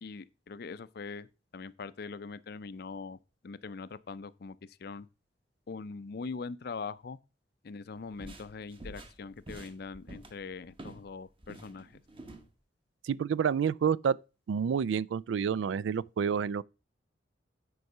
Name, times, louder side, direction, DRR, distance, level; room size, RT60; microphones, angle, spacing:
voice 1, 0.0-1.3 1.5-3.2 3.4-5.1 5.7-7.2 7.6-12.0, left 4 dB, 60° left, 0.5 m, -42 dB
sound 1, 8.0-11.1 11.4-12.5, right 1 dB, 30° right, 1.1 m, -48 dB
voice 2, 13.0-14.2 14.5-16.6, right 7 dB, 85° right, 0.3 m, -29 dB
9.3 x 4.7 x 5.4 m
head